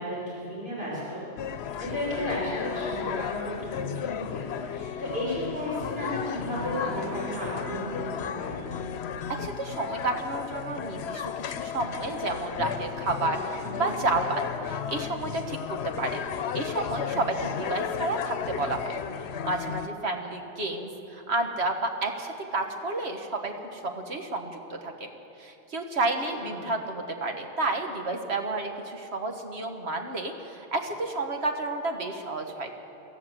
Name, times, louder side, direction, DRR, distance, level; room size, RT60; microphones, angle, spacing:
voice 1, 0.0-1.5 1.8-8.6 13.6-14.0 26.3-26.7, equal, 65° right, -7 dB, 5.3 m, -34 dB
sound 1, 1.4-19.9, left 8 dB, 80° left, 0.9 m, -34 dB
voice 2, 9.3-19.0 19.4-25.1 25.4-32.7, right 2 dB, 80° right, 4 dB, 1.9 m, -31 dB
24.5 x 14.5 x 7.6 m, 3.0 s
omnidirectional pair, 1.1 m